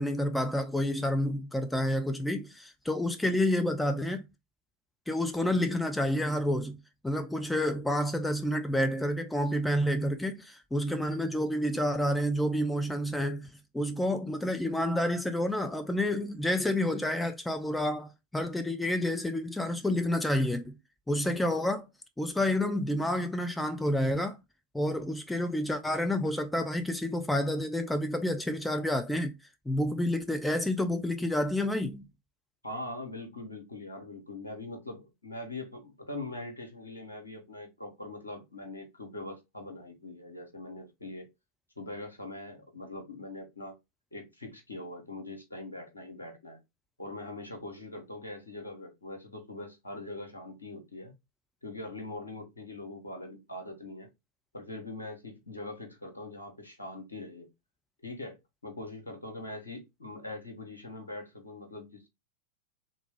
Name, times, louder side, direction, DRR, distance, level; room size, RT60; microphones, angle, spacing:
voice 1, 0.0-4.3 5.1-6.8 7.0-13.5 13.7-20.8 21.1-21.8 22.2-24.4 24.7-29.4 29.7-32.0, left 1 dB, 5° left, 0.5 m, -29 dB
voice 2, 32.6-41.3 41.8-43.7 44.1-46.6 47.0-51.1 51.6-54.1 54.5-57.5 58.0-62.1, left 2 dB, 80° left, 1.2 m, -42 dB
3.5 x 2.6 x 3.4 m
figure-of-eight pair, 90°, 0 cm